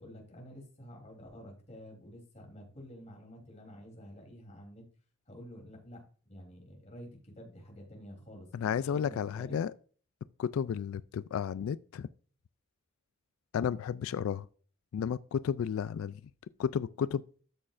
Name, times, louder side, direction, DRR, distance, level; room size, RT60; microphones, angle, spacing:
voice 1, 0.0-4.8 5.3-6.0 6.3-9.6, equal, 35° left, 3.4 m, -49 dB
voice 2, 8.5-9.7 10.4-12.1 13.5-14.5 14.9-16.2 16.6-17.2, left 7 dB, 75° left, 0.3 m, -32 dB
13.0 x 6.3 x 2.5 m
head